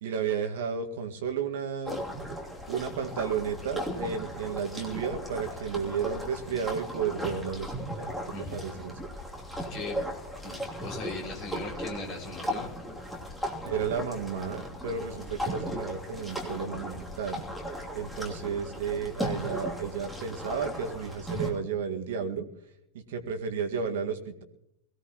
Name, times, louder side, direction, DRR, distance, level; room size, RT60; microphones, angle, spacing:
voice 1, 0.0-2.1 2.7-7.7 8.0-8.1 8.5-9.0 13.6-17.4 17.9-22.5 22.9-24.4, right 6 dB, 55° right, 6 dB, 1.8 m, -32 dB
sound 1, 1.8-21.5, equal, 5° left, 2.9 m, -37 dB
voice 2, 8.3-8.7 9.7-10.0 10.4-12.7 14.9-15.4, left 2 dB, 40° left, -1 dB, 5.8 m, -39 dB
22.5 x 16.0 x 3.0 m, 0.82 s
figure-of-eight pair, 90°, 0 cm